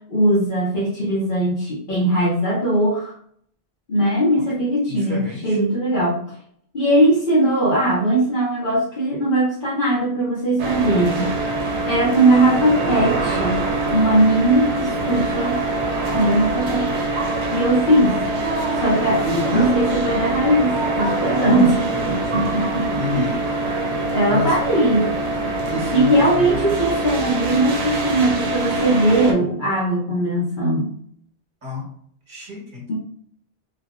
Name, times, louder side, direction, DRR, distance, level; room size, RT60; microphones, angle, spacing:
voice 1, 0.1-3.1 3.9-6.2 6.7-11.2 11.8-13.6 13.9-15.6 16.1-17.1 17.5-18.1 18.8-19.2 19.5-21.7 22.3-23.3 24.1-25.1 25.9-30.9 32.9-33.0, right 1 dB, 50° left, -8 dB, 1.1 m, -19 dB
voice 2, 4.9-5.6 17.8-18.0 19.2-19.7 21.3-22.5 23.0-23.4 24.3-24.6 25.7-26.6 31.6-31.9 32.3-32.8, left 2 dB, 50° right, -3 dB, 1.5 m, -30 dB
sound 1, 10.6-29.3, right 2 dB, 80° right, 0.9 m, -24 dB
3.1 x 2.5 x 2.5 m, 0.63 s
omnidirectional pair, 1.1 m